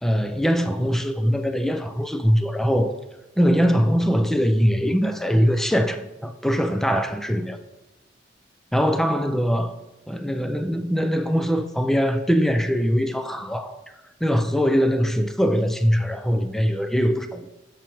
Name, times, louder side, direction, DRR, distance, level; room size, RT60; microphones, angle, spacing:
voice 1, 0.0-2.9 3.4-7.6 8.7-9.7 10.1-13.8 14.2-17.6, equal, ahead, 0.3 m, -22 dB
6.9 x 6.0 x 3.0 m
head